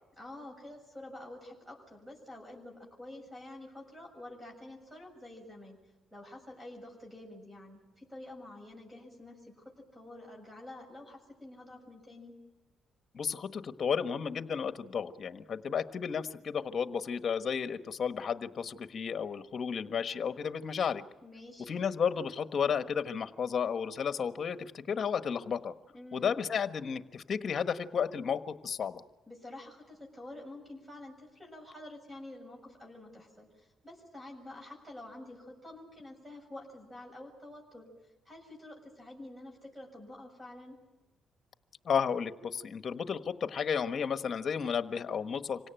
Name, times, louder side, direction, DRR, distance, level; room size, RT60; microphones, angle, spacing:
voice 1, 0.2-5.8 6.1-12.4 21.2-21.7 25.9-26.3 29.3-37.9 38.3-40.8, left 1 dB, 10° right, 1 dB, 7.1 m, -48 dB
voice 2, 13.1-21.0 21.7-25.7 26.1-29.0 41.8-45.7, left 7 dB, 50° left, 10 dB, 1.4 m, -33 dB
26.0 x 17.5 x 9.1 m, 1.1 s
cardioid pair, 90°, 0 cm